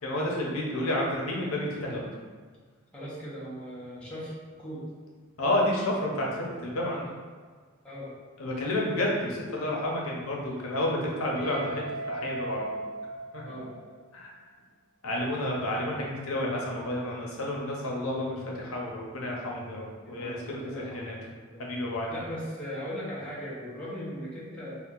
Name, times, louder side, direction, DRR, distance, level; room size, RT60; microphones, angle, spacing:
voice 1, 0.0-2.1 5.4-7.1 8.4-12.6 13.3-13.4 14.1-14.4 15.0-21.1 21.6-22.2, left 1 dB, 85° left, -2 dB, 0.7 m, -30 dB
voice 2, 2.9-4.3 4.6-4.9 7.8-8.1 13.4-13.7 19.5-19.8 20.1-21.7 22.1-24.7, equal, 5° left, -9 dB, 0.8 m, -39 dB
Guitar, 11.3-14.2, right 2 dB, 85° right, 1.1 m, -37 dB
2.8 x 2.4 x 3.7 m, 1.5 s
head